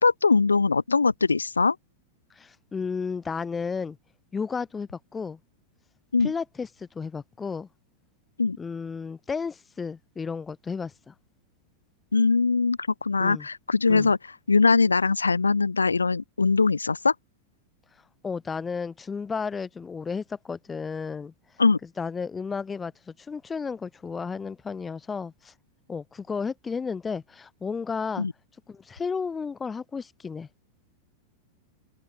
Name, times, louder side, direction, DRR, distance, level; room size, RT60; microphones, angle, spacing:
voice 1, 0.0-1.7 6.1-6.3 8.4-8.6 12.1-14.2 14.5-17.1 21.6-21.8 28.2-28.3, left 4 dB, 75° left, 1.6 m, -21 dB
voice 2, 2.4-4.0 4.3-5.4 6.2-7.7 8.6-11.1 13.2-13.5 13.9-14.1 18.2-21.3 22.0-25.5 25.9-28.3 28.7-30.5, left 5 dB, 15° left, 4.2 m, -33 dB
figure-of-eight pair, 90°, 0 cm